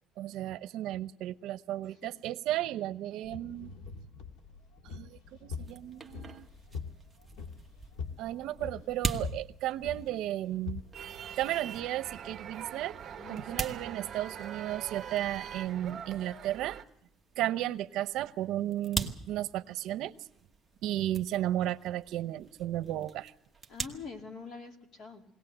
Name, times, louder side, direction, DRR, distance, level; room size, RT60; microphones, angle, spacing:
voice 1, 0.2-3.7 4.8-6.5 8.2-10.8 11.4-13.0 13.3-16.8 17.4-20.1 20.8-23.3, right 13 dB, 70° right, 13 dB, 0.8 m, -34 dB
sound 1, 3.2-11.9, left 5 dB, 85° left, 2.1 m, -44 dB
sound 2, 5.5-23.9, right 3 dB, 10° right, 1.2 m, -43 dB
sound 3, 10.9-16.8, right 8 dB, 35° right, 1.1 m, -43 dB
voice 2, 13.2-13.7 23.7-25.2, left 5 dB, 40° left, 4 dB, 2.4 m, -45 dB
21.5 x 18.0 x 7.9 m, 0.69 s
cardioid pair, 165°, 0 cm